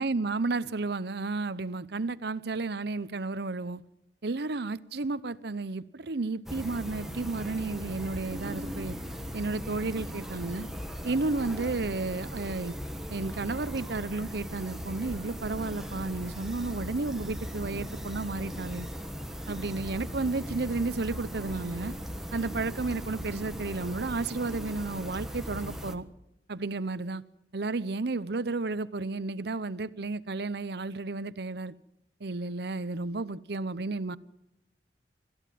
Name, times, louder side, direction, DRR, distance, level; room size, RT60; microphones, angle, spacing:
voice 1, 0.0-3.8 4.2-9.0 9.3-10.7 11.0-12.7 13.1-18.9 19.5-21.9 22.3-26.0 26.5-27.2 27.5-31.7 32.2-34.2, right 3 dB, 65° right, 0.8 m, -32 dB
sound 1, 6.5-26.0, equal, ahead, 1.4 m, -38 dB
26.5 x 14.0 x 7.7 m
head